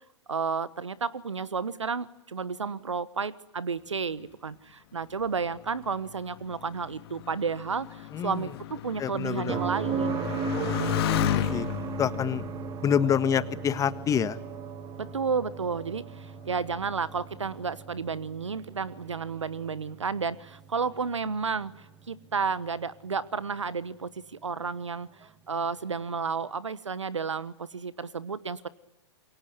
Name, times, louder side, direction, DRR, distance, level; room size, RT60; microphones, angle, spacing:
voice 1, 0.3-11.0 15.0-28.7, right 5 dB, 85° right, 18 dB, 1.1 m, -32 dB
Motorcycle, 5.2-14.2 14.9-15.5, left 12 dB, 55° left, 2.7 m, -33 dB
voice 2, 8.1-8.4 9.0-9.6 11.2-11.7 12.0-12.4 12.8-14.4, left 8 dB, 20° left, 13 dB, 1.6 m, -27 dB
sound 1, 9.5-23.3 25.6-25.7, right 6 dB, 25° right, 1.6 m, -37 dB
27.5 x 23.5 x 8.1 m, 0.89 s
hypercardioid pair, 105°, 15 cm